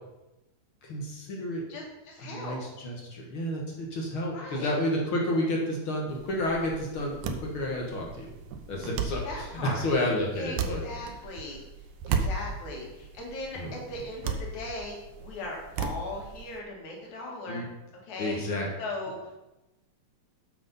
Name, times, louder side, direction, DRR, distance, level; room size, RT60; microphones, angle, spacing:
voice 1, 0.8-1.6 2.3-8.3 8.7-10.8 13.6-13.8 17.5-17.7 18.2-18.7, left 1 dB, 50° left, -1 dB, 2.0 m, -30 dB
voice 2, 1.7-2.6 4.3-4.7 9.2-9.9 10.4-11.6 12.1-17.6 18.0-18.4 18.8-19.3, left 2 dB, 75° left, -1 dB, 3.3 m, -38 dB
sound 1, 6.1-16.6, right 5 dB, 90° right, 2.3 m, -36 dB
7.8 x 6.9 x 5.4 m, 0.98 s
omnidirectional pair, 3.3 m